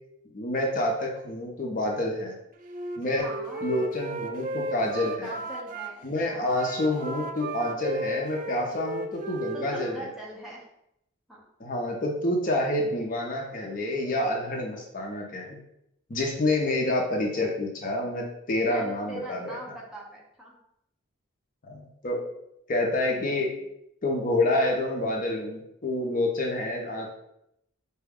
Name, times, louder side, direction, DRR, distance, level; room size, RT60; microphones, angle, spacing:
voice 1, 0.3-2.4 3.0-3.3 3.6-5.3 6.0-10.0 11.6-15.6 16.1-19.6 21.6-22.3 22.7-23.5 24.0-27.2, left 1 dB, 40° left, -1 dB, 0.6 m, -28 dB
Wind instrument woodwind instrument, 2.6-5.9 6.5-10.0, right 2 dB, 40° right, 0.3 m, -35 dB
voice 2, 3.2-3.7 5.2-6.4 9.5-10.7 11.3-11.5 18.6-20.6 23.3-23.4, right 1 dB, ahead, -5 dB, 0.7 m, -42 dB
4.8 x 2.2 x 3.5 m, 0.80 s
head